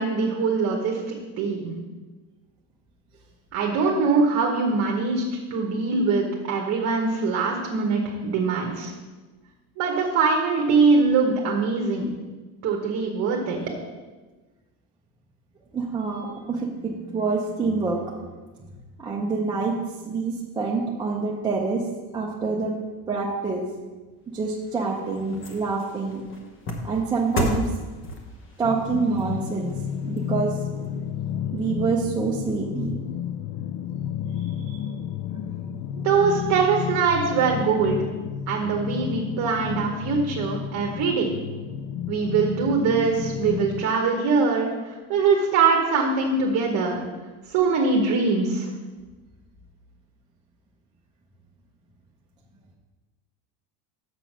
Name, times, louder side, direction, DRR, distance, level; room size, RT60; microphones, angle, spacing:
voice 1, 0.0-1.8 3.5-8.9 9.8-12.1 12.6-13.6 36.0-38.0 38.5-41.3 42.1-47.0 47.5-48.7, right 4 dB, 45° right, 0 dB, 1.1 m, -22 dB
voice 2, 15.7-18.3 19.0-19.8 20.0-21.8 22.1-22.8 23.1-23.7 24.3-26.2 26.8-27.7 28.6-29.7 30.0-30.6 31.5-32.9 34.3-34.8, right 4 dB, 10° right, -4 dB, 0.5 m, -26 dB
sound 1, 24.4-30.9 31.3-31.4, left 1 dB, 30° left, 1.0 m, -34 dB
sound 2, 28.6-43.9, left 9 dB, 80° left, 0.5 m, -31 dB
7.0 x 6.1 x 6.0 m, 1.3 s
cardioid pair, 170°, 40 cm